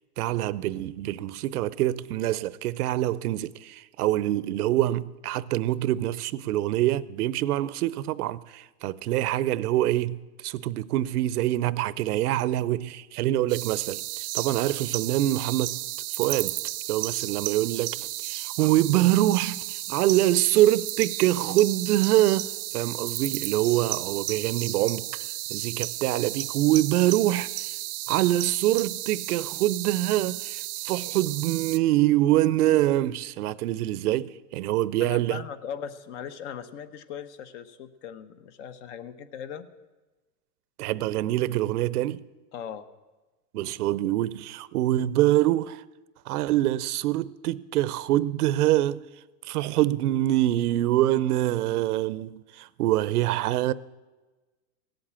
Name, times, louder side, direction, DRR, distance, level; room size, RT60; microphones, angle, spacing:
voice 1, 0.2-15.8 16.1-16.5 16.9-25.1 25.5-27.7 28.1-35.4 40.8-42.2 43.5-45.8 46.3-49.0 49.4-53.7, right 14 dB, 80° right, 0.7 m, -25 dB
sound 1, 13.5-31.8, right 18 dB, 40° right, 0.4 m, -33 dB
voice 2, 35.0-39.7 42.5-42.9, left 8 dB, 50° left, 1.1 m, -39 dB
17.0 x 7.9 x 8.8 m
supercardioid pair, 155°, 45 cm